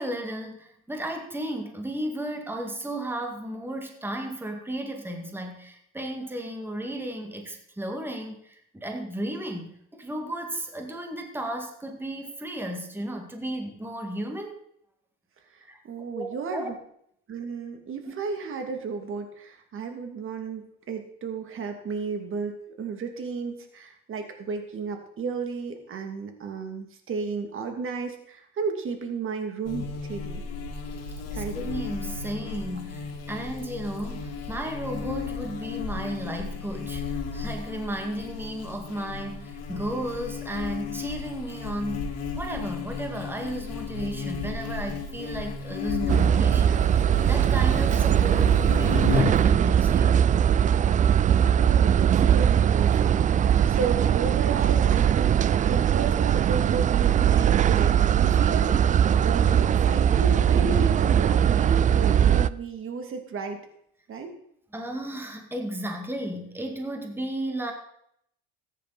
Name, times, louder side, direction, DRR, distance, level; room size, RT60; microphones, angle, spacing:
voice 1, 0.0-14.5 15.7-16.7 18.1-18.2 31.3-50.2 64.7-67.7, right 1 dB, 5° right, 3 dB, 2.2 m, -34 dB
voice 2, 15.5-16.7 17.3-30.4 31.3-31.7 51.0-51.2 51.5-63.6 64.1-64.3, right 5 dB, 40° right, 5 dB, 2.6 m, -33 dB
Buzz, 29.6-49.5, left 5 dB, 55° left, 2.7 m, -34 dB
sound 1, 46.1-62.5, right 9 dB, 25° right, 0.4 m, -20 dB
14.0 x 10.0 x 4.3 m, 0.70 s
supercardioid pair, 95°, 31 cm